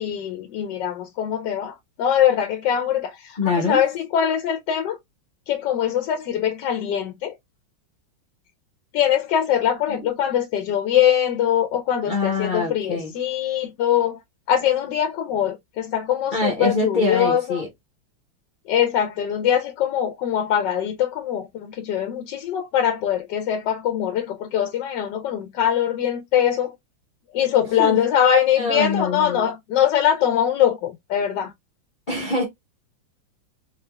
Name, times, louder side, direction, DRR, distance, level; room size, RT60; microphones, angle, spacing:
voice 1, 0.0-5.0 5.5-7.3 8.9-14.2 14.5-17.6 18.7-26.7 27.3-31.5, left 9 dB, 70° left, 1.2 m, -22 dB
voice 2, 3.4-3.8 9.9-10.0 12.1-13.1 16.3-17.7 27.8-28.0 28.6-29.4 32.1-32.4, left 3 dB, 40° left, 0.7 m, -24 dB
3.8 x 3.3 x 2.2 m
omnidirectional pair, 2.1 m